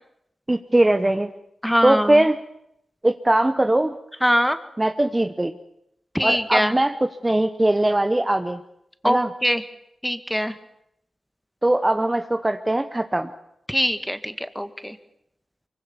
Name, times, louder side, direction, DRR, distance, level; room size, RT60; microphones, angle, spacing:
voice 1, 0.5-1.3 1.8-2.4 3.0-4.0 4.8-5.5 6.2-8.6 9.0-9.3 11.6-13.3, right 1 dB, 20° right, 8 dB, 1.1 m, -20 dB
voice 2, 1.6-2.2 4.2-4.6 6.1-6.8 9.0-9.6 10.0-10.6 13.7-15.0, equal, 5° left, 10 dB, 1.9 m, -22 dB
24.5 x 23.5 x 7.1 m, 0.79 s
cardioid pair, 65°, 0 cm